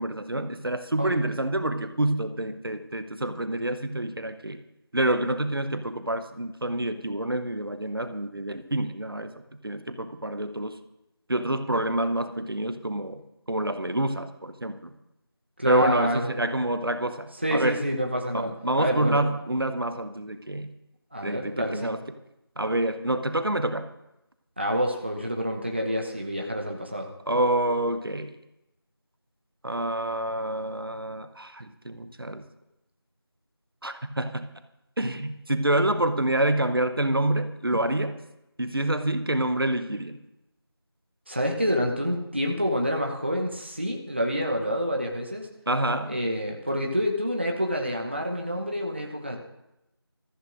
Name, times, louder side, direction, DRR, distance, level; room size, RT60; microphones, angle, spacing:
voice 1, 0.0-4.6 4.9-9.3 9.6-10.8 11.3-13.2 13.5-14.9 15.7-17.8 18.3-20.7 21.2-22.0 22.6-23.9 27.3-28.4 29.6-32.5 33.8-34.5 35.0-38.2 38.6-40.2 45.7-46.2, right 1 dB, 60° right, 9 dB, 0.9 m, -27 dB
voice 2, 15.6-16.3 17.4-18.5 18.8-19.2 21.1-21.9 24.6-27.1 41.3-45.5 46.1-49.4, equal, 25° right, 1 dB, 0.8 m, -28 dB
22.5 x 14.0 x 2.6 m, 0.91 s
figure-of-eight pair, 175°, 13 cm